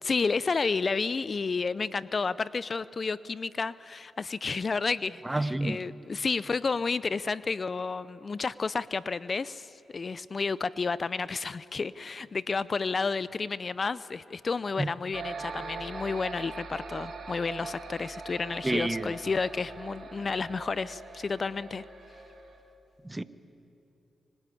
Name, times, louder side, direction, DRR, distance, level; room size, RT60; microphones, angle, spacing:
voice 1, 0.0-21.8, left 4 dB, 50° left, 17 dB, 0.5 m, -31 dB
voice 2, 5.2-5.8 14.8-14.9 18.6-19.1 23.0-23.2, right 2 dB, 20° right, 13 dB, 1.1 m, -29 dB
sound 1, 15.1-22.6, right 4 dB, 70° right, 3.2 m, -42 dB
25.0 x 19.5 x 8.5 m, 2.8 s
supercardioid pair, 50°, 0 cm